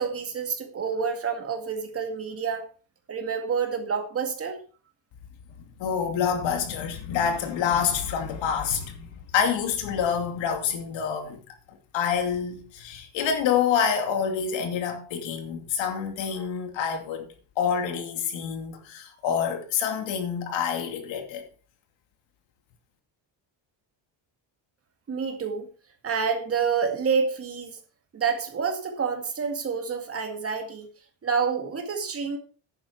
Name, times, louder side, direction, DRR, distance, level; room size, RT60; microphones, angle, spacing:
voice 1, 0.0-2.7 3.1-4.6 25.1-25.7 26.0-27.8 28.1-30.9 31.2-32.4, right 6 dB, 30° right, 2.0 m, -28 dB
voice 2, 5.8-9.1 9.3-11.4 11.7-17.3 17.6-21.4, left 7 dB, 70° left, 2.6 m, -27 dB
10.5 x 9.2 x 4.4 m
cardioid pair, 160°, 46 cm